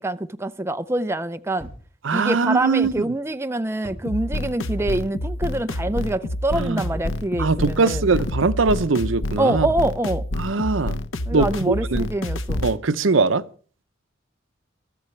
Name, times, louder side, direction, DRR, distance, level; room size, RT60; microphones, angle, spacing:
voice 1, 0.0-1.7 2.1-8.0 9.4-10.3 11.3-12.6, right 1 dB, 15° right, 0.6 m, -25 dB
sound 1, 1.6-1.9 2.4-3.1 3.8-4.1 4.8-5.0 5.9-6.2 6.9-7.2 8.2-8.4 9.5-9.7, equal, 5° left, 4.9 m, -41 dB
voice 2, 2.0-3.0 6.5-6.9 7.4-9.7 10.4-11.0 11.3-12.1 12.6-13.4, right 4 dB, 75° right, 0.7 m, -21 dB
sound 2, 4.1-12.8, left 1 dB, 90° left, 0.9 m, -28 dB
23.0 x 13.5 x 3.3 m
head